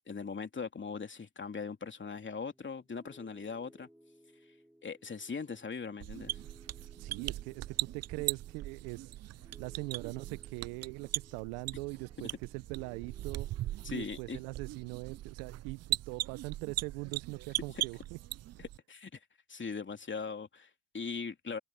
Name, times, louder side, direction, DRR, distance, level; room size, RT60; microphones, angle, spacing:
voice 1, 0.1-3.9 4.8-6.4 13.8-14.4 17.7-17.8 18.6-19.2 19.5-21.6, left 5 dB, 30° left, 3.0 m, -40 dB
Piano, 2.1-15.2, right 1 dB, 5° right, 6.3 m, -62 dB
sound 1, 6.0-18.8, right 14 dB, 40° right, 0.5 m, -39 dB
voice 2, 7.0-9.1 9.6-13.5 13.9-18.2, right 28 dB, 75° right, 1.0 m, -41 dB
open air
hypercardioid pair, 60°, 39 cm